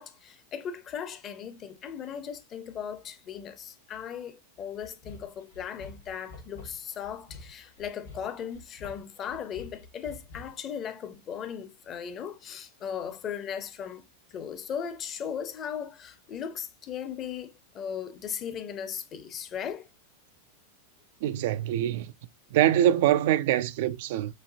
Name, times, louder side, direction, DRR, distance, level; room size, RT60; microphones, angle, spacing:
voice 1, 0.0-19.9, left 8 dB, 30° left, 0.7 m, -37 dB
sound 1, 4.8-10.7, left 2 dB, 65° left, 1.8 m, -47 dB
voice 2, 21.2-22.1 22.5-24.4, right 12 dB, 50° right, 0.3 m, -24 dB
6.3 x 2.7 x 2.6 m
figure-of-eight pair, 90°, 0 cm